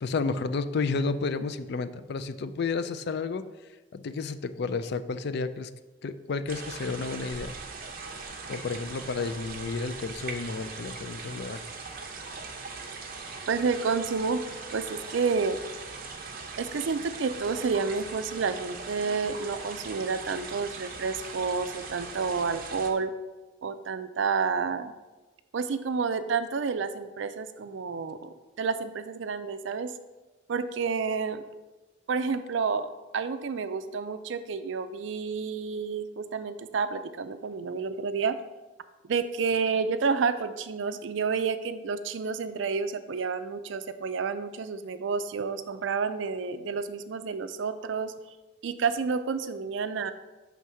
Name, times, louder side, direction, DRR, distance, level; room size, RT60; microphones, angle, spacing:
voice 1, 0.0-3.4 3.9-5.7 6.0-7.6 8.5-11.6, left 4 dB, 55° left, 12 dB, 0.4 m, -31 dB
sound 1, 6.5-22.9, right 4 dB, 50° right, 0.8 m, -40 dB
voice 2, 13.5-14.4 14.7-15.6 16.6-23.1 23.6-24.9 25.5-29.9 30.5-31.4 32.1-38.4 39.0-48.1 48.6-50.1, right 5 dB, 70° right, 11 dB, 0.4 m, -30 dB
6.3 x 3.5 x 5.6 m, 1.2 s
head